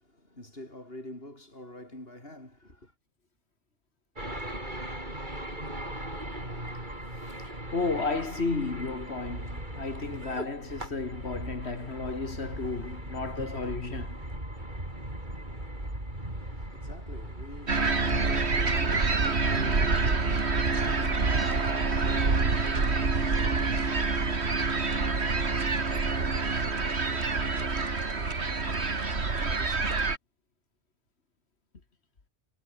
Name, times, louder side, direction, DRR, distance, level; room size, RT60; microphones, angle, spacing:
voice 1, 0.0-2.9 16.3-23.8, left 1 dB, 65° left, 8.0 m, -46 dB
sound 1, 4.2-22.4, right 1 dB, 45° right, 7.9 m, -39 dB
voice 2, 7.7-14.2, left 3 dB, 80° left, 2.7 m, -33 dB
sound 2, 17.7-30.2, right 4 dB, 85° right, 2.7 m, -27 dB
omnidirectional pair, 1.1 m